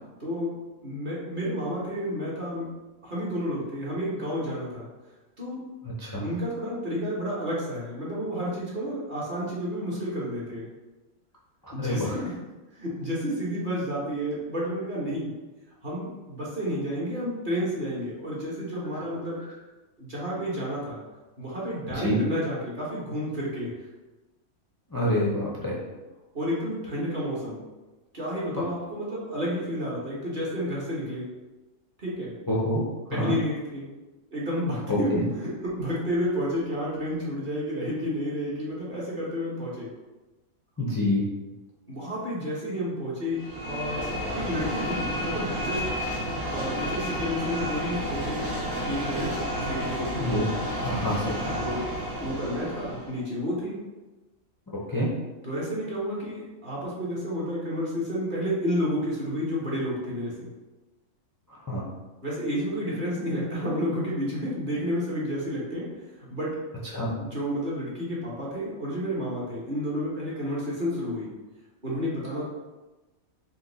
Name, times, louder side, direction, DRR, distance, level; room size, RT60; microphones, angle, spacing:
voice 1, 0.2-0.5 0.8-2.7 3.0-4.9 5.4-5.6 6.2-10.7 11.7-12.3 12.7-15.4 15.8-19.4 20.0-21.0 21.4-23.7 26.3-27.6 28.1-31.3 32.0-32.3 33.1-33.9 34.3-39.9 41.9-44.1 44.3-46.0 46.5-48.5 48.8-49.3 49.6-50.3 51.6-51.8 52.2-53.8 55.4-60.5 62.2-65.9 66.3-66.6 67.2-71.3 71.8-72.4, equal, 40° right, -6 dB, 1.2 m, -30 dB
voice 2, 11.8-12.2 21.9-22.2 24.9-25.8 32.5-32.8 33.1-33.3 34.9-35.2 40.8-41.2 50.2-50.4 50.8-51.6 54.9-55.1 61.7-61.8 66.9-67.1, left 1 dB, 30° left, -6 dB, 0.4 m, -26 dB
sound 1, 43.3-53.2, equal, 75° right, 2.0 m, -31 dB
4.4 x 2.5 x 3.9 m, 1.1 s
omnidirectional pair, 1.5 m